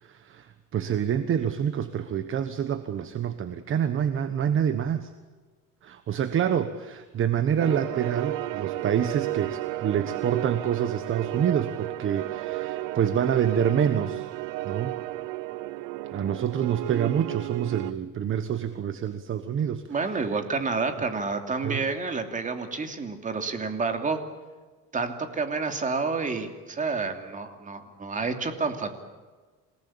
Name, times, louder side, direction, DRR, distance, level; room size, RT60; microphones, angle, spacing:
voice 1, 0.0-5.1 5.8-14.3 14.6-14.9 16.1-19.8 20.1-20.2 21.6-21.8, right 8 dB, 40° right, 11 dB, 1.3 m, -27 dB
sound 1, 7.6-17.9, right 17 dB, 85° right, 0.8 m, -33 dB
voice 2, 19.9-24.2 24.9-28.9, right 4 dB, 25° right, 6 dB, 2.9 m, -29 dB
27.5 x 18.5 x 8.7 m, 1.3 s
cardioid pair, 135°, 31 cm